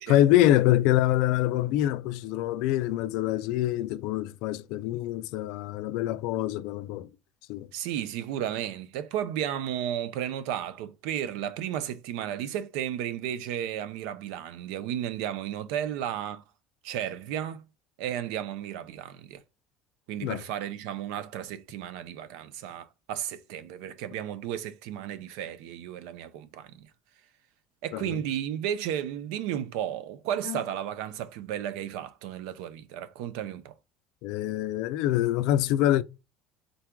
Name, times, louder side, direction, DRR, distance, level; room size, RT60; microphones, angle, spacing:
voice 1, 0.0-7.1 7.5-7.7 20.2-20.4 27.9-28.2 30.5-30.6 34.2-36.0, left 13 dB, 75° left, 0.3 m, -25 dB
voice 2, 7.7-16.4 16.8-17.7 18.0-19.4 20.1-26.9 27.8-33.7, right 10 dB, 85° right, 0.5 m, -33 dB
3.9 x 2.2 x 4.4 m
cardioid pair, 125°, 0 cm